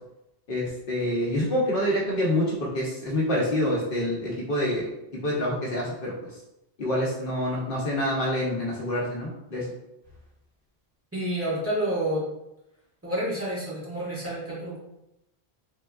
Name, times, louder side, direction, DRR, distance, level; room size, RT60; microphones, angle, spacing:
voice 1, 0.5-4.9 5.2-6.1 6.8-9.6, left 1 dB, 60° left, -4 dB, 0.9 m, -26 dB
voice 2, 11.1-12.2 13.0-14.8, right 1 dB, 15° right, -8 dB, 1.4 m, -29 dB
3.7 x 3.4 x 2.3 m, 0.88 s
omnidirectional pair, 1.0 m